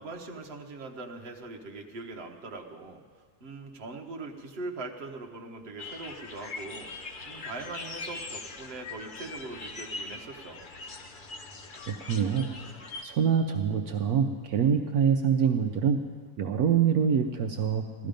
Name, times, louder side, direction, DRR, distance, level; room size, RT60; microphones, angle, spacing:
voice 1, 0.0-3.0 3.4-10.6, right 3 dB, 45° right, 2 dB, 1.2 m, -41 dB
sound 1, 5.8-13.0, left 3 dB, 40° left, 0.8 m, -41 dB
voice 2, 11.9-12.5 13.0-16.0 16.4-18.1, right 7 dB, 70° right, 5 dB, 1.1 m, -25 dB
15.5 x 13.0 x 5.2 m, 1.5 s
omnidirectional pair, 1.7 m